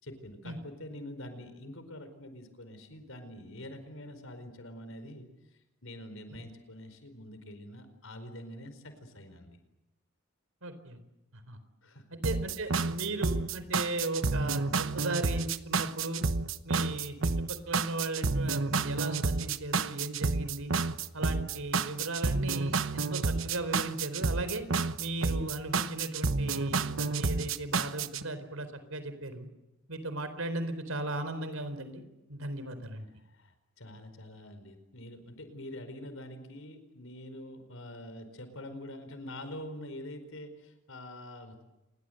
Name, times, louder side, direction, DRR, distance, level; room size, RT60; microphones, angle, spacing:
voice 1, 0.0-5.3 5.8-9.6 11.8-12.2 33.2-33.5 33.8-41.6, left 1 dB, 75° left, 9 dB, 4.7 m, -45 dB
voice 2, 10.6-11.0 11.3-11.6 12.1-16.2 16.6-20.7 21.1-24.6 25.0-29.5 29.9-32.0 32.3-33.1, right 2 dB, 90° right, 11 dB, 4.2 m, -36 dB
sound 1, 12.2-28.2, right 4 dB, 70° right, 1.1 m, -30 dB
28.0 x 22.0 x 8.0 m, 0.95 s
head